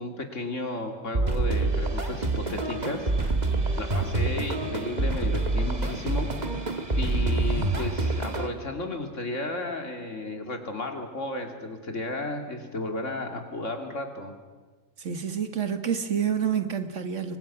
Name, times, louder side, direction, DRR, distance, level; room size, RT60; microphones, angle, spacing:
voice 1, 0.0-3.4 3.8-6.3 6.9-14.3, left 2 dB, 70° left, 4 dB, 3.0 m, -33 dB
sound 1, 1.1-8.5, right 2 dB, 35° right, 1.9 m, -27 dB
voice 2, 7.4-7.7 15.0-17.4, right 8 dB, 70° right, 8 dB, 1.9 m, -28 dB
29.0 x 24.0 x 6.0 m, 1.3 s
omnidirectional pair, 1.3 m